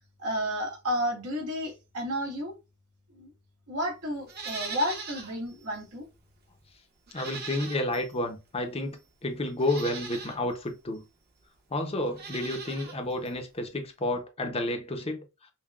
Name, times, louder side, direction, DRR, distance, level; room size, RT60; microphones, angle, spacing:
voice 1, 0.2-2.5 3.1-3.3 3.7-6.1, equal, 85° right, 1.8 m, -31 dB
Livestock farm animals working animals, 4.3-5.4 5.7-5.8 7.1-8.1 8.9-9.0 9.6-10.4 12.1-13.0 13.3-13.4, right 5 dB, 45° right, 1.0 m, -40 dB
voice 2, 7.1-11.0 11.7-15.2, left 1 dB, 25° left, 0.6 m, -31 dB
5.7 x 2.2 x 2.4 m
head